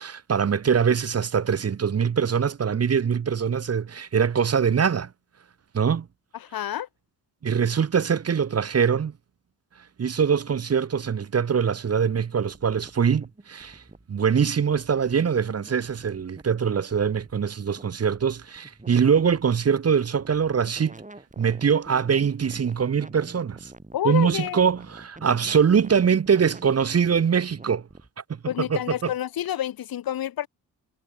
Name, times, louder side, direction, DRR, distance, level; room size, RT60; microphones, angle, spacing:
voice 1, 0.0-5.1 5.7-6.1 7.4-9.1 10.0-13.8 14.1-21.0 21.4-23.7 24.0-27.9 28.7-29.1, right 7 dB, 35° right, 0.9 m, -23 dB
voice 2, 6.3-6.9 23.9-24.6 28.5-30.5, left 11 dB, 50° left, 0.8 m, -29 dB
sound 1, 12.5-28.1, right 2 dB, 15° right, 6.2 m, -47 dB
hypercardioid pair, 45°, 44 cm